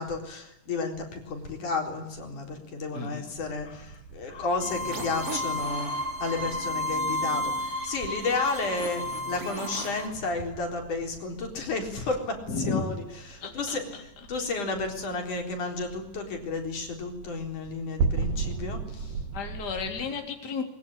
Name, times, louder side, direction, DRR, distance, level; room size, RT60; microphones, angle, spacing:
voice 1, 0.0-5.9 6.2-12.4 12.7-12.9 13.3-19.1, left 3 dB, 65° left, 3 dB, 5.4 m, -32 dB
voice 2, 2.9-3.3 3.6-3.9 4.3-4.5 9.8-10.0 12.5-12.8 13.4-14.0 14.3-14.5 19.3-20.6, left 5 dB, 30° left, 3 dB, 3.5 m, -34 dB
sound 1, 3.3-20.1, right 5 dB, 80° right, 3.4 m, -38 dB
sound 2, 4.6-10.1, left 1 dB, 25° right, 3.9 m, -32 dB
22.0 x 22.0 x 10.0 m, 0.85 s
omnidirectional pair, 3.8 m